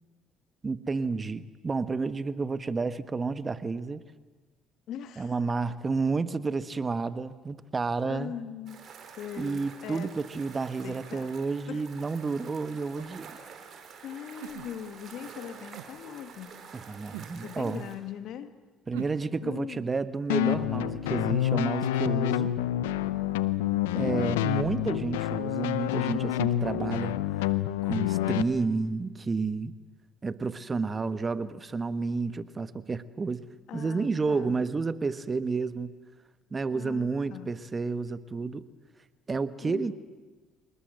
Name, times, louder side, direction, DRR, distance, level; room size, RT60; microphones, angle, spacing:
voice 1, 0.6-4.0 5.2-8.3 9.4-13.4 16.7-17.8 18.9-22.5 24.0-27.5 27.8-29.7 30.2-33.4 33.7-35.9 36.5-38.7 39.3-39.9, right 4 dB, 30° right, 13 dB, 1.2 m, -30 dB
voice 2, 4.9-5.4 8.0-8.8 9.2-10.2 10.8-11.3 11.7-11.8 14.0-16.6 17.4-18.5 19.4-19.9 23.9-24.5 33.7-34.6 36.7-37.5 39.6-39.9, left 9 dB, 65° left, 10 dB, 1.8 m, -40 dB
sound 1, 8.7-18.0, right 6 dB, 50° right, 4.6 m, -48 dB
sound 2, 13.0-13.2 14.4-15.1 15.7-15.9 17.1-17.4 18.9-19.2, right 15 dB, 85° right, 1.0 m, -41 dB
sound 3, 20.3-28.4, left 13 dB, 90° left, 0.8 m, -28 dB
26.5 x 20.0 x 7.9 m, 1.3 s
hypercardioid pair, 65°, 0 cm